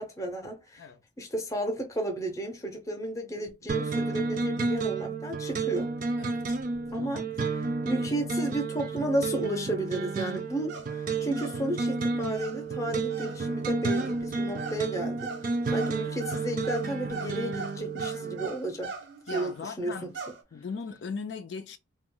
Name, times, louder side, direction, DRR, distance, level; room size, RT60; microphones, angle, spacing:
voice 1, 0.0-0.8 1.2-5.9 6.9-7.2 7.8-18.9 19.3-20.1, right 1 dB, 15° left, 0.6 m, -33 dB
sound 1, 3.7-18.5, right 3 dB, 45° right, 0.4 m, -31 dB
voice 2, 6.2-6.6 7.0-7.5 19.3-20.1 20.5-21.8, left 5 dB, 70° left, 0.4 m, -39 dB
sound 2, 10.6-10.9 11.2-11.6 11.9-19.6 20.0-20.4, right 4 dB, 85° right, 0.6 m, -41 dB
2.3 x 2.0 x 3.6 m
head